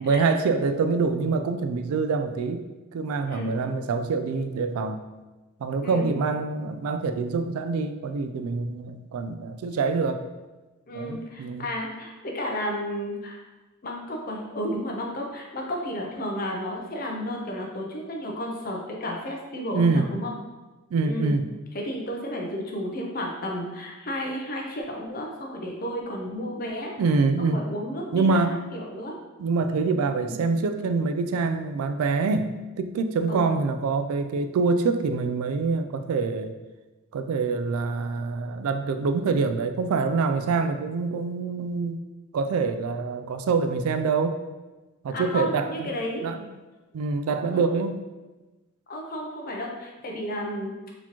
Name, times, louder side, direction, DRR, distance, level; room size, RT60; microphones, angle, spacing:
voice 1, 0.0-2.7 2.9-5.0 5.6-10.3 10.9-11.7 19.7-20.1 20.9-21.5 27.0-27.6 28.1-28.6 29.4-36.6 37.1-42.0 42.3-44.4 45.0-45.9 46.2-46.5 46.9-48.0, right 4 dB, 80° right, 8 dB, 0.3 m, -25 dB
voice 2, 10.9-13.4 13.8-20.3 21.0-21.4 21.7-26.9 27.4-28.4 28.7-29.2 30.0-30.4 33.3-33.5 45.1-46.2 47.5-47.7 48.9-50.7, equal, 40° left, 0 dB, 0.6 m, -32 dB
4.1 x 2.9 x 2.9 m, 1.2 s
head